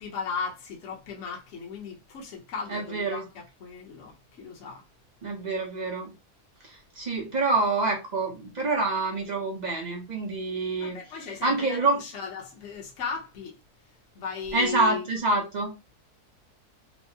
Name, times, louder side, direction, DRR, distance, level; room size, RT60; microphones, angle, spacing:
voice 1, 0.0-4.8 10.8-13.6 14.1-15.1, left 5 dB, 55° left, 1.1 m, -36 dB
voice 2, 2.7-3.2 5.2-6.1 6.6-11.0 11.4-12.0 14.5-15.7, right 3 dB, 40° right, 0.6 m, -27 dB
4.5 x 2.0 x 2.7 m
omnidirectional pair, 1.7 m